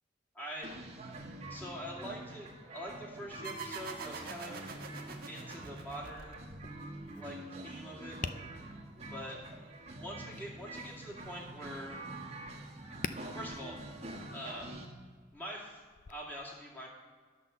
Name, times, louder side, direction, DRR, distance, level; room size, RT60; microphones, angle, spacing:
voice 1, 0.3-0.7 1.5-4.7 5.3-6.4 7.2-8.2 9.1-9.4 10.0-12.0 13.3-13.7 14.3-14.7 15.3-15.8 16.1-16.9, equal, 10° left, -5 dB, 2.4 m, -44 dB
sound 1, 0.6-14.9, right 1 dB, 40° right, 1.4 m, -46 dB
sound 2, 3.4-6.7, right 4 dB, 55° right, 1.5 m, -45 dB
Tap, 6.4-16.1, left 5 dB, 45° left, 0.4 m, -49 dB
10.5 x 5.9 x 6.9 m, 1.5 s
head